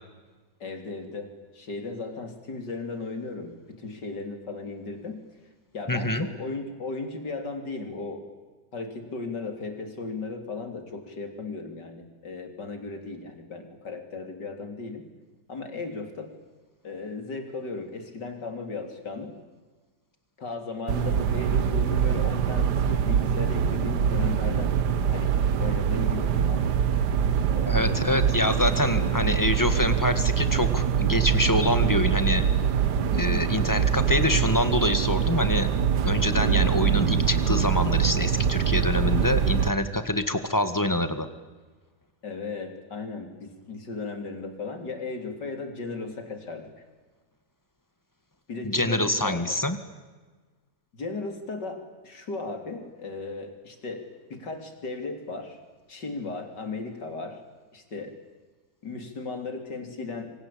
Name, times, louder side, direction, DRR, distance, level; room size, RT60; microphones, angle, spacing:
voice 1, 0.6-5.2 5.7-8.2 8.7-15.0 15.5-16.3 16.8-19.3 20.4-24.8 25.1-26.7 27.5-28.5 29.0-29.3 33.3-33.6 42.2-46.7 48.5-49.4 50.9-55.6 55.9-57.4 57.7-58.2 58.8-60.3, left 3 dB, 85° left, 6 dB, 4.1 m, -36 dB
voice 2, 5.9-6.3 27.7-32.4 33.1-35.7 36.0-41.3 48.6-49.8, left 1 dB, 10° left, 10 dB, 1.8 m, -25 dB
sound 1, 20.9-39.7, right 8 dB, 75° right, 1.6 m, -24 dB
27.5 x 24.5 x 8.7 m, 1.3 s
omnidirectional pair, 1.8 m